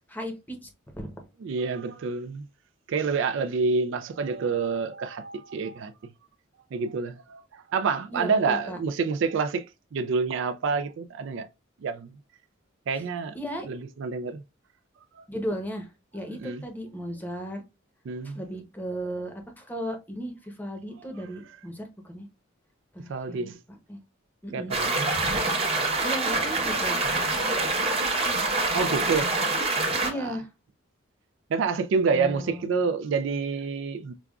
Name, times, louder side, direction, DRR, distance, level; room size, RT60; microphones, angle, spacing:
voice 1, 0.1-1.1 8.1-8.8 12.9-13.0 13.3-13.7 15.3-17.6 18.2-22.3 22.9-24.0 24.4-24.7 26.0-27.5 30.0-30.5 32.1-32.7, equal, 10° left, 0.8 m, -36 dB
voice 2, 1.4-2.5 2.9-5.9 6.7-9.7 9.9-11.5 11.8-12.1 12.9-13.3 13.7-14.4 15.2-15.3 16.3-16.6 18.1-18.4 23.1-23.6 24.5-25.1 28.7-30.3 31.5-34.1, right 5 dB, 65° right, 0.3 m, -28 dB
sound 1, 24.7-30.1, right 2 dB, 30° right, 0.8 m, -25 dB
5.0 x 2.3 x 2.3 m
head